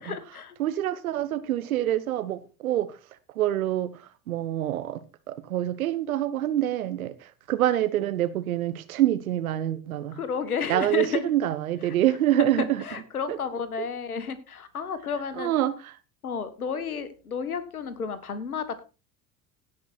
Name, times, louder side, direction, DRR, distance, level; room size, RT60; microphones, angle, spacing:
voice 1, 0.0-0.6 10.1-11.2 11.8-12.0 12.4-15.5 16.2-18.8, left 6 dB, 80° left, 1.5 m, -32 dB
voice 2, 0.6-2.9 3.3-4.0 4.3-5.0 5.3-7.1 7.5-10.2 10.7-12.8 13.3-13.4 15.4-15.9, right 12 dB, 75° right, 1.2 m, -26 dB
16.5 x 6.0 x 4.4 m
figure-of-eight pair, 70°, 43 cm